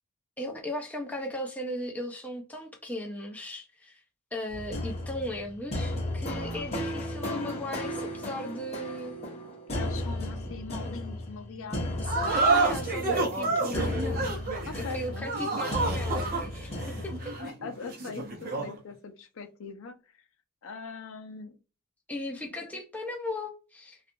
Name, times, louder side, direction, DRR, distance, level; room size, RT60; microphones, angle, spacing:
voice 1, 0.4-4.0 4.3-9.2 10.2-10.5 12.0-14.4 14.7-16.7 17.0-17.4 22.1-24.0, left 1 dB, 5° left, 0.4 m, -37 dB
sound 1, 4.5-17.4, left 1 dB, 30° left, 0.9 m, -35 dB
voice 2, 9.7-12.5 14.7-15.3 17.4-20.2 20.6-21.6, left 4 dB, 60° left, 0.5 m, -42 dB
sound 2, 12.0-18.8, right 3 dB, 40° right, 0.8 m, -29 dB
2.4 x 2.3 x 2.6 m
head